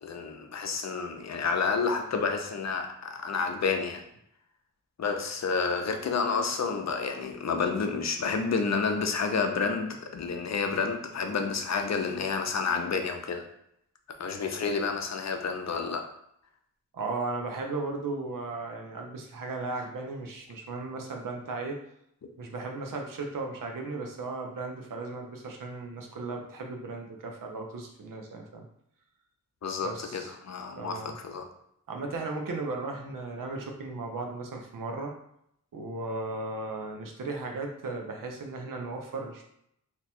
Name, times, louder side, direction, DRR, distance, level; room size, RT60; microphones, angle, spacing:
voice 1, 0.0-4.0 5.0-13.4 14.2-16.0 29.6-31.5, left 5 dB, 55° left, 5 dB, 0.6 m, -30 dB
voice 2, 16.9-21.8 22.4-28.7 29.8-30.3 30.8-31.2 31.9-35.1 35.7-39.4, right 3 dB, 85° right, 2 dB, 0.6 m, -36 dB
2.8 x 2.2 x 4.2 m, 0.74 s
cardioid pair, 60°, 32 cm